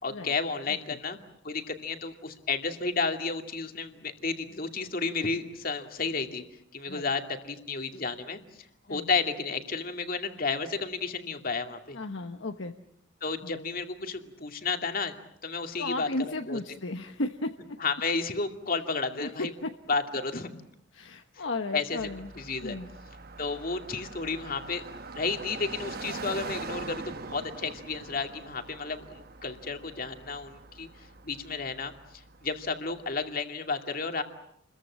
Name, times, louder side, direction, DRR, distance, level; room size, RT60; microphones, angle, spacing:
voice 1, 0.0-1.2 1.4-6.5 6.7-8.4 8.9-12.0 13.2-15.2 15.4-16.1 16.5-16.6 17.8-19.5 19.9-20.5 21.3-21.4 21.7-22.0 22.4-22.8 23.4-24.8 25.2-34.2, left 4 dB, 45° left, 5 dB, 2.5 m, -32 dB
voice 2, 0.7-1.0 6.9-7.1 8.9-9.1 11.9-12.7 13.4-13.7 15.8-17.8 19.2-19.7 20.9-22.3 22.6-22.9, left 2 dB, 65° left, 6 dB, 1.1 m, -35 dB
Car passing by, 22.0-33.1, right 3 dB, 45° right, 1.1 m, -43 dB
29.5 x 22.5 x 7.6 m, 0.74 s
head